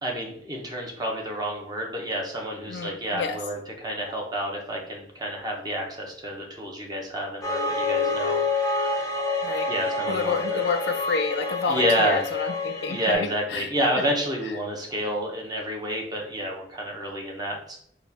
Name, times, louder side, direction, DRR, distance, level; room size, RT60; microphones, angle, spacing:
voice 1, 0.0-9.0 9.7-10.6 11.7-12.2 12.9-17.8, equal, 20° right, 0 dB, 0.8 m, -29 dB
voice 2, 2.7-3.4 9.4-9.7 10.1-13.7 14.0-14.1 14.4-14.5, left 4 dB, 70° left, 7 dB, 0.4 m, -29 dB
sound 1, 7.4-13.1, left 3 dB, 20° left, 0.6 m, -27 dB
4.1 x 2.3 x 3.3 m, 0.66 s
head